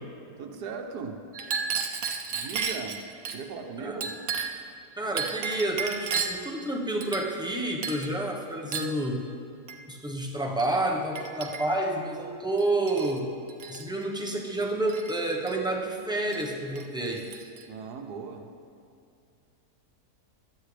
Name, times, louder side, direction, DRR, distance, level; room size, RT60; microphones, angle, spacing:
voice 1, 0.4-1.2 2.3-3.0 3.3-4.2 17.7-18.5, right 5 dB, 85° right, 4 dB, 1.5 m, -38 dB
Chink clink, 1.3-3.4 4.0-4.7 5.2-6.5 7.0-7.5 7.8-8.1 8.7-9.0 9.7-9.8 10.6-10.7 11.1-11.9 12.6-13.2 13.5-13.9 14.9-15.6 16.3-16.5 16.8-17.6, right 5 dB, 65° right, 1.2 m, -33 dB
voice 2, 4.9-9.2 9.9-13.3 13.7-17.3, right 1 dB, 5° right, -1 dB, 1.0 m, -29 dB
16.5 x 11.5 x 3.4 m, 2.5 s
omnidirectional pair, 1.7 m